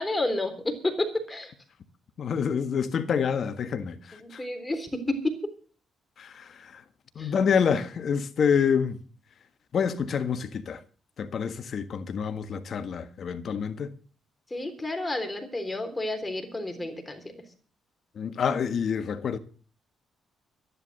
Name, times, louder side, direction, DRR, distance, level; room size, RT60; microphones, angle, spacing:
voice 1, 0.0-1.5 4.1-5.5 7.2-7.3 14.5-17.4, left 2 dB, 15° left, 3.6 m, -30 dB
voice 2, 2.2-4.4 6.2-6.8 7.1-9.0 9.7-10.8 11.2-13.9 18.1-19.4, left 7 dB, 55° left, 1.5 m, -27 dB
13.0 x 11.0 x 6.8 m
cardioid pair, 90°, 0 cm